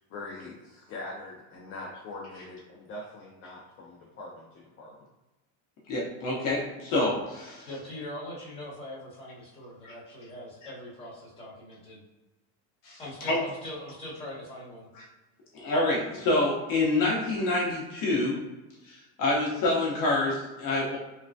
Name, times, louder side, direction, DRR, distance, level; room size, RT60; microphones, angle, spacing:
voice 1, 0.1-5.1, left 2 dB, 30° left, -4 dB, 0.4 m, -42 dB
voice 2, 5.9-7.7 9.8-9.9 12.8-13.0 13.3-13.4 15.0-15.1 15.5-18.4 18.9-21.0, left 2 dB, 50° left, -3 dB, 0.7 m, -27 dB
voice 3, 7.7-12.0 13.0-14.9, left 1 dB, 15° left, -8 dB, 1.2 m, -41 dB
3.1 x 2.1 x 2.5 m, 1.1 s
cardioid pair, 140°, 43 cm